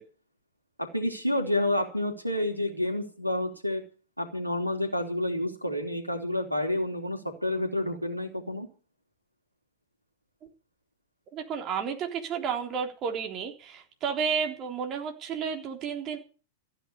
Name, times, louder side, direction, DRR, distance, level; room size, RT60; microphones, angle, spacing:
voice 1, 0.8-3.8 4.2-8.7, left 1 dB, 90° right, 5 dB, 3.2 m, -29 dB
voice 2, 11.3-16.2, right 6 dB, 30° right, 2 dB, 3.6 m, -32 dB
15.5 x 9.8 x 7.0 m, 0.37 s
figure-of-eight pair, 95°, 0 cm